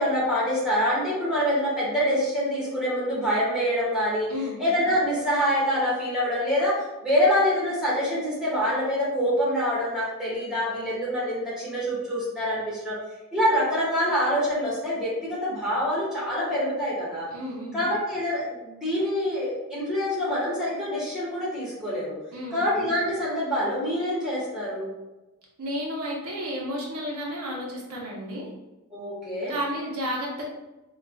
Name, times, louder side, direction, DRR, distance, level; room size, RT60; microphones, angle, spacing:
voice 1, 0.0-4.3 4.6-13.0 13.3-17.3 17.7-22.1 22.5-24.9 28.9-29.5, equal, 5° right, -8 dB, 1.3 m, -25 dB
voice 2, 17.3-17.8 22.3-22.6 25.6-28.5 29.5-30.4, equal, 75° right, -2 dB, 0.8 m, -32 dB
4.5 x 2.4 x 2.2 m, 1.1 s
head